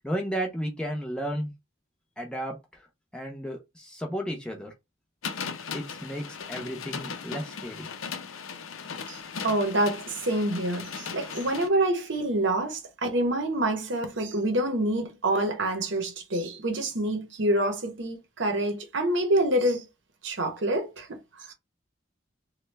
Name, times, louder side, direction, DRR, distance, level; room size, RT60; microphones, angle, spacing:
voice 1, 0.0-1.5 2.2-2.6 3.1-4.7 5.7-7.9, equal, 5° left, 0.7 m, -33 dB
sound 1, 5.2-11.7, left 6 dB, 80° left, 0.5 m, -38 dB
voice 2, 9.1-19.8 20.2-21.2 21.5-21.6, right 1 dB, 65° right, 0.8 m, -27 dB
3.2 x 2.2 x 3.2 m
head